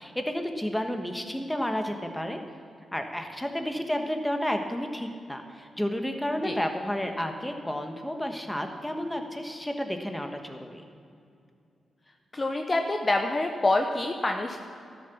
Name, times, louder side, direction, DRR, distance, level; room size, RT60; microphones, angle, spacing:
voice 1, 0.0-2.4 2.9-10.8, equal, 5° left, 5 dB, 1.3 m, -31 dB
voice 2, 12.3-14.6, left 2 dB, 30° left, 4 dB, 0.9 m, -26 dB
12.5 x 7.0 x 7.1 m, 2.5 s
cardioid pair, 65°, 0 cm